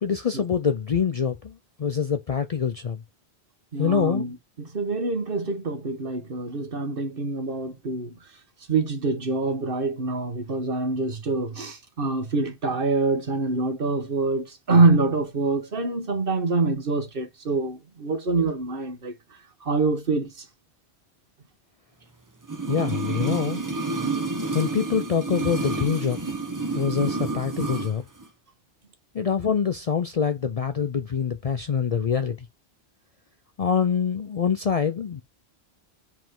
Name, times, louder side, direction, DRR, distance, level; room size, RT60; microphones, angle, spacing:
voice 1, 0.0-3.0 3.8-4.2 22.7-23.6 24.5-26.2 26.7-28.0 29.1-32.5 33.6-35.2, left 7 dB, 50° left, 0.5 m, -25 dB
voice 2, 3.7-8.1 8.7-19.1 19.7-20.3, right 3 dB, 60° right, 1.5 m, -25 dB
sound 1, 22.4-27.9 28.2-28.3, right 3 dB, 20° right, 0.9 m, -29 dB
5.5 x 5.0 x 3.6 m
omnidirectional pair, 1.1 m